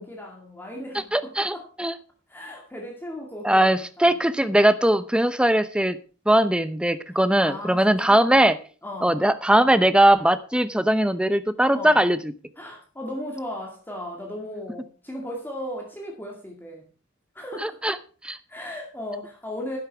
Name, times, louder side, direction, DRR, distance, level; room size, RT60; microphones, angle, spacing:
voice 1, 0.0-1.7 2.3-4.1 7.4-8.2 8.8-9.3 11.7-12.1 12.6-16.9 17.3-17.8 18.5-19.8, left 1 dB, 10° left, 0 dB, 2.2 m, -36 dB
voice 2, 1.1-1.9 3.4-6.0 6.3-8.6 9.0-12.2 17.6-18.0 18.2-18.4, right 1 dB, 5° right, 12 dB, 0.8 m, -20 dB
11.5 x 11.0 x 4.6 m, 0.38 s
head